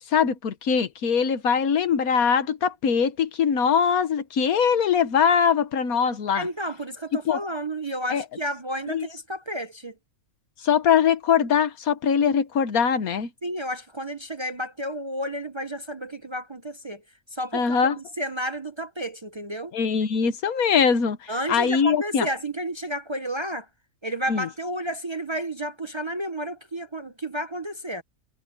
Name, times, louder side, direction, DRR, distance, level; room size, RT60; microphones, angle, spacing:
voice 1, 0.1-6.5 7.3-7.4 8.1-8.2 8.9-9.1 10.6-13.3 17.5-18.0 19.7-22.3 24.3-24.5, left 7 dB, 90° left, 1.6 m, -22 dB
voice 2, 6.3-9.9 13.4-17.0 17.3-19.7 21.3-23.7 24.0-28.0, equal, 25° right, 0.7 m, -31 dB
omnidirectional pair, 1.5 m